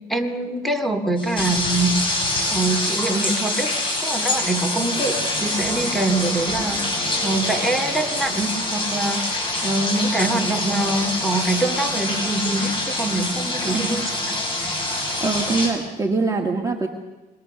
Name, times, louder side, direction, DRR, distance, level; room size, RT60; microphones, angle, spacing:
voice 1, 0.1-2.0 2.5-3.7 4.0-6.8 7.2-14.3, right 2 dB, ahead, 7 dB, 2.8 m, -24 dB
sound 1, 1.2-15.7, left 2 dB, 30° left, 7.2 m, -25 dB
voice 2, 13.7-14.0 15.2-16.9, right 3 dB, 20° right, 1 dB, 1.7 m, -23 dB
25.5 x 22.0 x 6.8 m, 1.1 s
cardioid pair, 110°, 17 cm